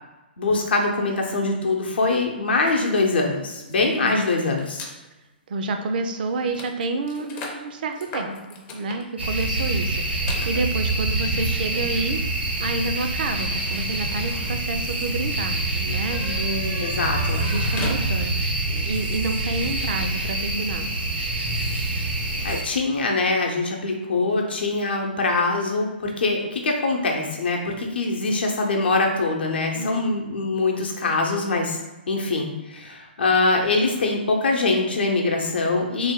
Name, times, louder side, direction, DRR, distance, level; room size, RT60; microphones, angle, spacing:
voice 1, 0.4-4.8 16.8-17.4 22.4-31.8 32.1-36.1, left 3 dB, 70° left, 1 dB, 0.7 m, -23 dB
sound 1, 2.6-5.0 5.7-5.8 6.1-18.5, left 3 dB, 25° left, 0.5 m, -40 dB
voice 2, 3.8-4.2 5.5-16.9 17.4-20.9 29.7-30.2, right 3 dB, 55° right, 6 dB, 0.4 m, -29 dB
sound 2, 9.2-22.6, right 2 dB, 80° right, 0.9 m, -26 dB
3.3 x 2.2 x 3.6 m, 1.1 s
figure-of-eight pair, 125°, 6 cm